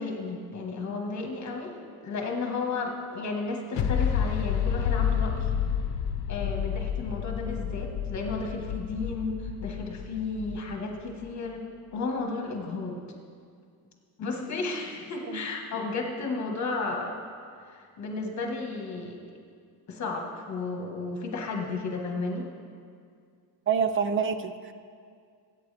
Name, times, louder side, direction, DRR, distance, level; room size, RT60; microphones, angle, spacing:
voice 1, 0.0-1.7 2.0-5.5 6.3-11.6 11.9-13.0 14.2-17.1 17.6-19.2 19.9-22.5, left 3 dB, 40° left, 2 dB, 1.6 m, -33 dB
sound 1, 3.8-11.3, left 8 dB, 80° left, 0.8 m, -30 dB
voice 2, 23.7-24.7, right 6 dB, 30° right, 10 dB, 0.4 m, -27 dB
21.5 x 9.0 x 3.4 m, 2.2 s
cardioid pair, 180°, 42 cm